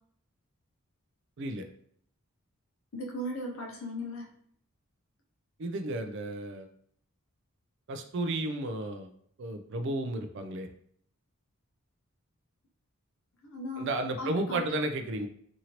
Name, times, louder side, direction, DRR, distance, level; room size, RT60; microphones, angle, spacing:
voice 1, 2.9-4.3 13.4-14.6, equal, 60° left, -1 dB, 0.5 m, -37 dB
voice 2, 5.6-6.7 7.9-9.1 9.4-10.7 13.8-15.3, right 2 dB, 55° right, 6 dB, 0.4 m, -33 dB
2.9 x 2.6 x 2.8 m, 0.64 s
head